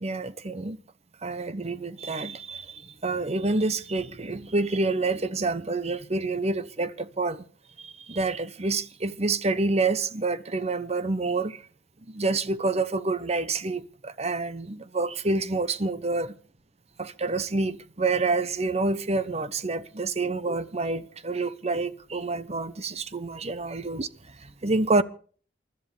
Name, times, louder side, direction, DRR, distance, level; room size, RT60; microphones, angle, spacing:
voice 1, 0.0-0.8 1.2-7.4 7.8-11.6 12.1-16.4 17.0-25.0, right 3 dB, 35° right, 0.9 m, -28 dB
28.5 x 13.0 x 3.4 m
head